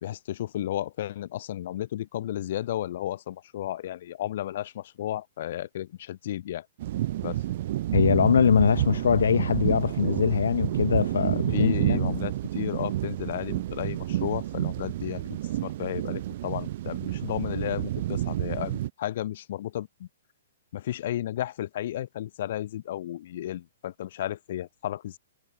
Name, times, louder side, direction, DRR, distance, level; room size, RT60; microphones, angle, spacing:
voice 1, 0.0-6.7 7.2-7.4 11.5-20.1 20.7-25.2, left 12 dB, 40° left, 2.2 m, -33 dB
sound 1, 6.8-18.9, right 14 dB, 35° right, 0.8 m, -29 dB
voice 2, 7.9-12.2, left 7 dB, 85° left, 0.6 m, -23 dB
hypercardioid pair, 175°, 0 cm